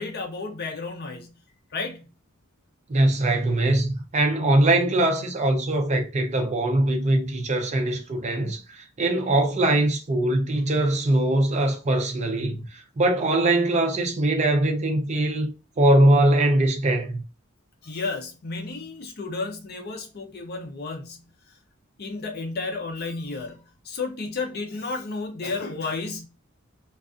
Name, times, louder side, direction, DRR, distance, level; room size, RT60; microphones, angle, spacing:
voice 1, 0.0-1.3 1.7-2.1 17.8-21.2 22.0-26.2, left 3 dB, 50° left, 0.6 m, -32 dB
voice 2, 2.9-15.5 15.8-17.2, right 1 dB, 35° right, 0.5 m, -22 dB
2.4 x 2.4 x 2.4 m
head